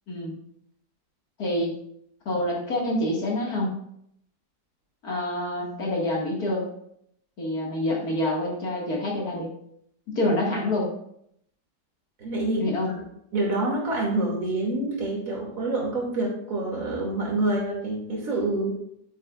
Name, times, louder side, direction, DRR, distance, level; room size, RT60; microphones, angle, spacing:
voice 1, 1.4-1.7 2.3-3.7 5.0-6.7 7.4-9.5 10.1-10.9 12.6-12.9, left 1 dB, 60° left, -3 dB, 2.5 m, -27 dB
voice 2, 12.2-12.7 13.3-18.8, right 2 dB, 50° right, -3 dB, 3.0 m, -27 dB
10.5 x 9.5 x 2.5 m, 0.72 s
omnidirectional pair, 1.9 m